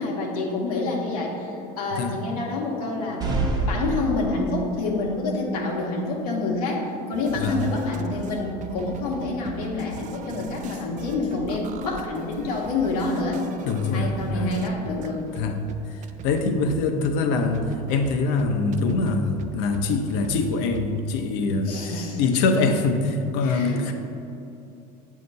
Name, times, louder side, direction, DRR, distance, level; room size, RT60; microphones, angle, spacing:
voice 1, 0.0-3.2 3.6-13.4 13.9-15.3 21.7-22.2 23.4-23.9, left 3 dB, 85° left, -2 dB, 1.0 m, -27 dB
sound 1, 3.2-4.9, right 2 dB, 20° right, 0.9 m, -26 dB
sound 2, 7.1-20.9, right 6 dB, 40° right, 0.4 m, -41 dB
voice 2, 13.6-14.5 15.3-15.6 15.9-23.9, left 3 dB, 70° left, 5 dB, 0.7 m, -24 dB
7.5 x 2.9 x 5.3 m, 2.7 s
supercardioid pair, 95°, 19 cm